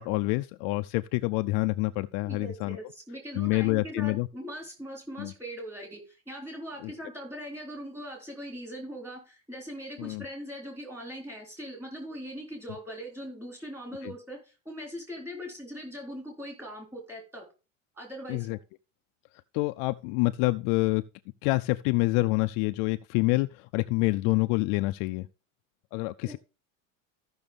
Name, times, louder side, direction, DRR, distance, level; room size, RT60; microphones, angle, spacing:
voice 1, 0.0-2.8 3.3-4.3 5.2-5.3 6.8-6.9 10.0-10.2 14.0-14.1 18.3-18.6 19.5-21.0 21.4-25.3 25.9-26.4, left 22 dB, 55° left, 0.5 m, -27 dB
voice 2, 2.3-17.4 17.9-18.5 26.2-26.4, equal, 5° right, 3.9 m, -41 dB
14.0 x 6.2 x 3.6 m
cardioid pair, 160°, 38 cm